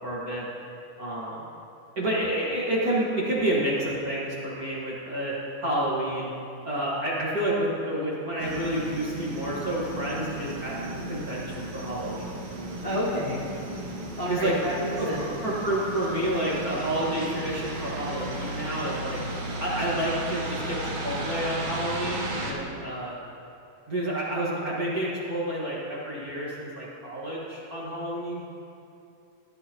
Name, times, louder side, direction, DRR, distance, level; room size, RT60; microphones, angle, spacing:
voice 1, 0.0-0.5 1.0-1.4 1.9-5.3 5.6-6.3 6.6-10.8 11.1-12.3 14.3-14.6 15.0-19.2 19.6-23.1 23.9-28.4, right 1 dB, 35° right, -7 dB, 1.6 m, -29 dB
sound 1, 8.4-22.5, right 1 dB, 55° right, 1.9 m, -35 dB
voice 2, 12.8-13.4 14.2-15.2, equal, 30° left, -7 dB, 0.6 m, -29 dB
15.0 x 11.0 x 3.0 m, 2.6 s
omnidirectional pair, 3.7 m